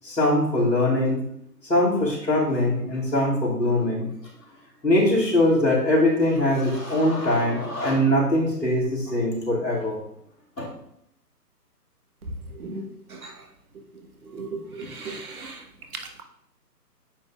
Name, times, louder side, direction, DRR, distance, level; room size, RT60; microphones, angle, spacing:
voice 1, 0.0-1.2 1.6-4.1 4.8-10.0 10.6-10.7, left 1 dB, 90° left, -4 dB, 2.6 m, -22 dB
voice 2, 15.0-15.5, right 4 dB, 60° right, 3 dB, 1.4 m, -35 dB
9.0 x 5.3 x 2.4 m, 0.73 s
figure-of-eight pair, 140°, 48 cm